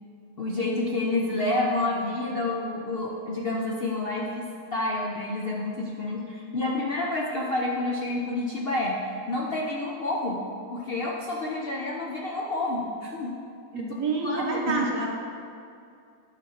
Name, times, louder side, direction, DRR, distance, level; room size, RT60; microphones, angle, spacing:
voice 1, 0.4-4.5 4.7-10.4 10.7-13.4 14.2-14.8, left 2 dB, 50° left, -2 dB, 0.7 m, -29 dB
voice 2, 13.7-15.1, right 4 dB, 55° right, -1 dB, 1.4 m, -28 dB
9.8 x 4.3 x 6.4 m, 2.5 s
omnidirectional pair, 1.7 m